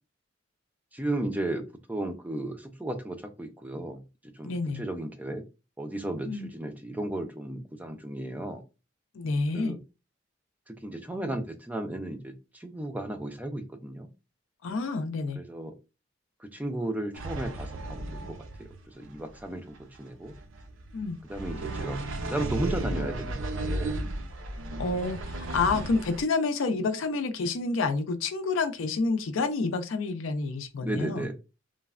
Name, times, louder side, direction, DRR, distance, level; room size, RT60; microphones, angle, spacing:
voice 1, 0.9-5.4 5.8-8.6 9.5-9.8 10.7-14.1 15.3-15.7 16.4-20.3 21.3-24.0 30.8-31.3, right 1 dB, 10° right, 0.3 m, -35 dB
voice 2, 4.4-4.9 6.2-6.5 9.1-9.8 14.6-15.4 20.9-21.2 24.8-31.3, left 3 dB, 85° left, 0.4 m, -29 dB
sound 1, 17.1-26.2, right 2 dB, 85° right, 0.5 m, -35 dB
3.2 x 2.1 x 2.3 m
head